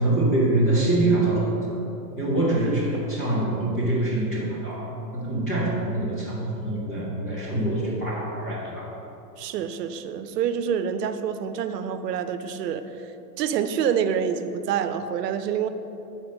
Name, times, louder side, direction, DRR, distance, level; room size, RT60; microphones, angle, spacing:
voice 1, 0.0-1.8 2.2-8.9, right 2 dB, 10° left, -8 dB, 0.3 m, -24 dB
voice 2, 9.4-13.1 13.4-15.7, right 8 dB, 85° right, 10 dB, 0.7 m, -27 dB
8.1 x 4.2 x 6.1 m, 2.9 s
supercardioid pair, 155°, 47 cm